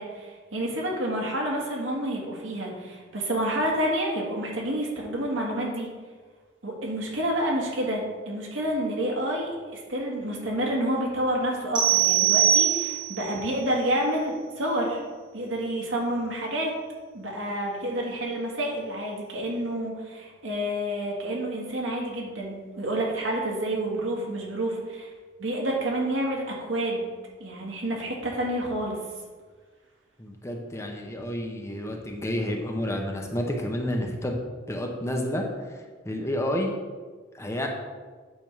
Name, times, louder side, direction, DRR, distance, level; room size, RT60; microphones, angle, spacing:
voice 1, 0.0-5.9 6.6-15.0 15.3-16.7 17.1-25.1 25.4-27.1 27.4-29.0, right 1 dB, 75° right, -2 dB, 1.8 m, -29 dB
sound 1, 11.7-13.3, right 10 dB, 25° right, 1.3 m, -21 dB
voice 2, 30.2-34.4 34.7-36.8 37.3-37.7, left 1 dB, 15° left, 1 dB, 0.7 m, -30 dB
8.7 x 3.5 x 5.9 m, 1.4 s
head